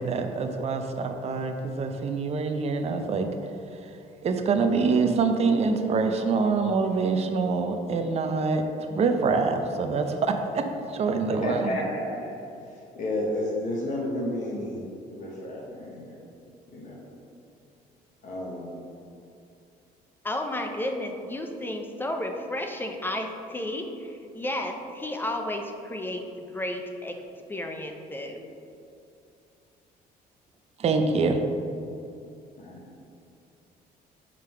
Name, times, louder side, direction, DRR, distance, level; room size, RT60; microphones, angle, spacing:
voice 1, 0.0-3.3 3.7-3.8 4.2-11.8 30.8-31.4, right 4 dB, 40° right, 6 dB, 0.5 m, -25 dB
voice 2, 11.3-12.3 12.7-14.8 15.1-16.2 16.7-17.1 18.2-18.8 32.6-32.9, left 1 dB, 45° left, -4 dB, 1.0 m, -31 dB
voice 3, 20.2-27.2 27.5-28.4, left 1 dB, 10° left, 4 dB, 0.5 m, -32 dB
4.9 x 3.7 x 5.6 m, 2.6 s
cardioid pair, 110°, 17 cm